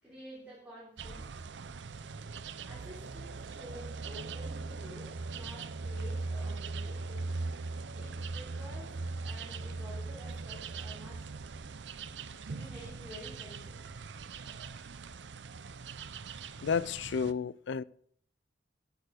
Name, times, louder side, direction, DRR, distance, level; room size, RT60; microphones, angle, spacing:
voice 1, 0.0-1.3 2.6-7.3 7.9-11.5 12.5-13.8, equal, 10° right, 3.4 m, -50 dB
sound 1, 1.0-17.3, right 3 dB, 75° right, 0.6 m, -40 dB
voice 2, 16.6-17.8, left 6 dB, 85° left, 0.4 m, -31 dB
9.2 x 8.7 x 6.4 m
head